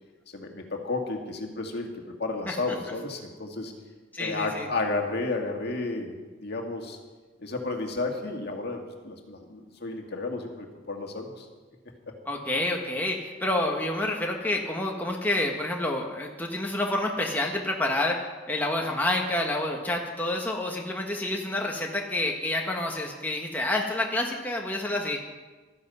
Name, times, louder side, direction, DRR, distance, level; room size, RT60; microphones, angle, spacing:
voice 1, 0.3-1.9 2.2-3.7 4.2-6.2 6.4-7.0 7.4-11.5, left 3 dB, 55° left, 2 dB, 2.0 m, -32 dB
voice 2, 4.1-4.7 12.3-25.2, left 1 dB, 10° left, 0 dB, 1.3 m, -28 dB
15.0 x 13.0 x 5.5 m, 1.3 s
head